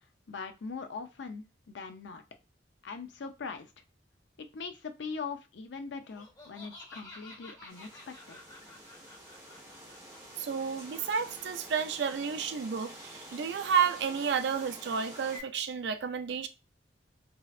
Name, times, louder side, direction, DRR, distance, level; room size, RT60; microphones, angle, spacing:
voice 1, 0.3-2.2 2.8-3.7 4.5-8.4, left 5 dB, 80° left, 0.5 m, -41 dB
Laughter, 6.0-11.6, left 2 dB, 20° left, 1.0 m, -52 dB
sound 1, 7.7-15.4, right 1 dB, 20° right, 1.1 m, -48 dB
voice 2, 10.4-16.5, right 6 dB, 70° right, 0.4 m, -31 dB
3.1 x 2.7 x 2.4 m
head